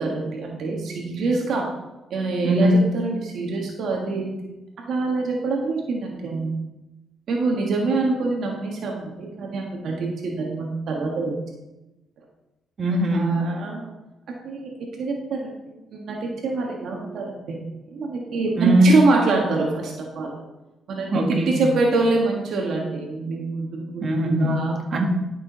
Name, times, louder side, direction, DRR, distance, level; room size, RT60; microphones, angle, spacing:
voice 1, 0.0-1.6 2.1-4.3 4.9-6.5 7.3-11.4 13.1-13.9 14.3-14.7 15.0-17.6 17.9-20.3 20.9-24.0 24.4-24.7, right 3 dB, 70° right, 0 dB, 1.6 m, -25 dB
voice 2, 2.4-2.8 12.8-13.3 18.6-18.9 21.1-21.7 24.0-24.6 24.9-25.0, right 1 dB, 45° right, 1 dB, 1.9 m, -20 dB
12.0 x 6.2 x 4.0 m, 1.0 s
cardioid pair, 90°, 0 cm